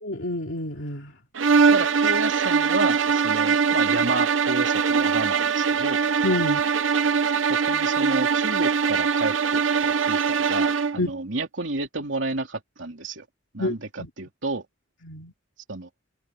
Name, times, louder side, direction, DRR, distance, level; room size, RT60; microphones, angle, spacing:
voice 1, 0.0-1.1 6.2-6.6 11.0-11.1 13.6-13.7 14.0-14.1 15.0-15.3, left 1 dB, 70° left, 2.8 m, -28 dB
sound 1, 1.3-11.0, right 6 dB, 90° right, 0.8 m, -22 dB
voice 2, 1.7-6.1 7.5-13.2 13.5-14.7 15.7-15.9, right 2 dB, 75° right, 3.1 m, -30 dB
head